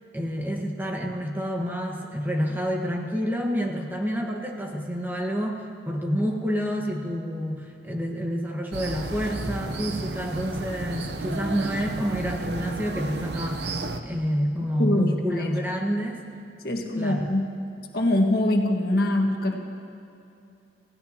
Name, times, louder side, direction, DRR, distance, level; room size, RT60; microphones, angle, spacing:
voice 1, 0.1-13.7 14.0-16.2 17.0-17.3, equal, 10° right, 0 dB, 1.4 m, -28 dB
sound 1, 8.7-14.0, right 2 dB, 70° right, 0.8 m, -32 dB
voice 2, 14.8-15.5 16.6-17.6 17.9-19.6, left 1 dB, 60° left, 2 dB, 1.6 m, -23 dB
29.5 x 16.0 x 2.9 m, 2.6 s
head